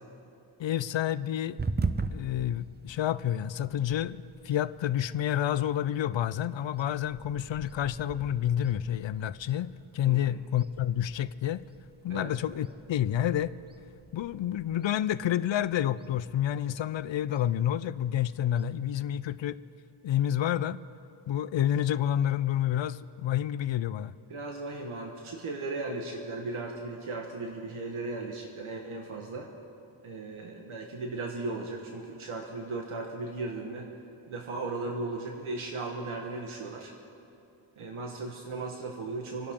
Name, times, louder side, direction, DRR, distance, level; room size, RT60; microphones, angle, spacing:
voice 1, 0.6-1.6 2.1-11.6 12.0-13.6 14.1-19.6 20.0-20.8 21.3-24.1, left 11 dB, 65° left, 16 dB, 0.6 m, -29 dB
sound 1, 1.6-19.4, right 3 dB, 20° right, 0.5 m, -42 dB
voice 2, 24.3-29.5 30.0-33.9 34.3-36.9 37.8-39.5, right 3 dB, 85° right, 1 dB, 1.4 m, -36 dB
28.0 x 11.5 x 3.7 m, 2.8 s
wide cardioid pair, 135°, 49 cm